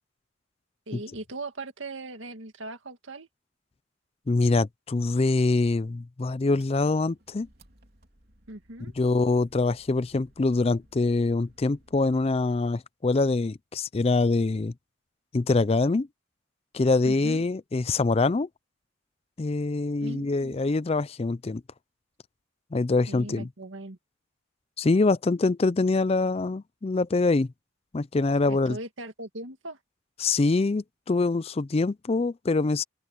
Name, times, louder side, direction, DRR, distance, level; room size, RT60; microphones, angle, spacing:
voice 1, 0.9-3.3 8.5-8.9 17.0-17.5 20.0-20.6 23.1-24.0 28.5-29.8, right 2 dB, 70° right, 2.0 m, -39 dB
voice 2, 4.3-7.5 9.0-14.7 15.3-16.1 16.7-18.5 19.4-21.6 22.7-23.5 24.8-27.5 27.9-28.8 30.2-32.8, left 3 dB, 30° left, 0.4 m, -24 dB
Engine, 6.5-12.8, right 1 dB, 50° right, 3.5 m, -61 dB
open air
head